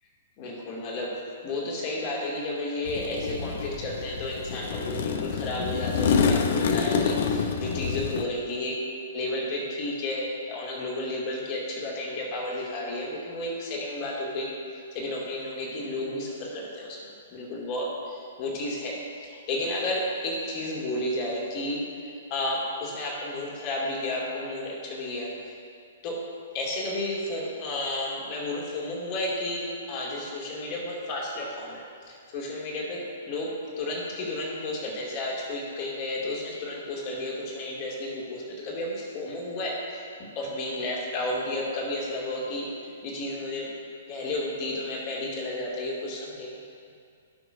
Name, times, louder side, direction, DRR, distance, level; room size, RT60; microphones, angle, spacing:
voice 1, 0.4-1.2 1.4-8.8 9.1-14.5 14.9-25.3 26.0-26.2 26.5-40.1 40.4-43.7 44.1-46.6, left 1 dB, 35° left, -3 dB, 2.2 m, -32 dB
sound 1, 2.9-8.2, left 6 dB, 50° left, 0.6 m, -27 dB
17.0 x 5.9 x 2.6 m, 2.3 s
figure-of-eight pair, 115°, 0 cm